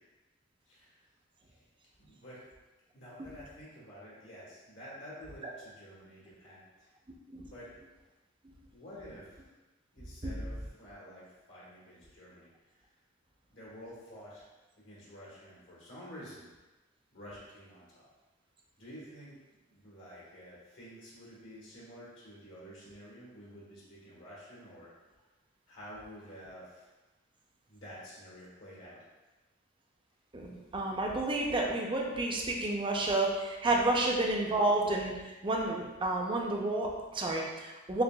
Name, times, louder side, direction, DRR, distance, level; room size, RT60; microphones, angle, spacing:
voice 1, 2.0-2.4 2.9-6.9 7.4-7.7 8.7-9.4 9.9-12.5 13.5-14.5 14.8-16.5 17.1-18.0 18.8-19.4 19.7-24.9 25.7-26.9 27.7-29.0, equal, 70° left, -8 dB, 1.5 m, -50 dB
voice 2, 30.3-38.0, right 2 dB, 25° right, 0 dB, 0.5 m, -30 dB
6.5 x 2.4 x 2.3 m, 1.2 s
head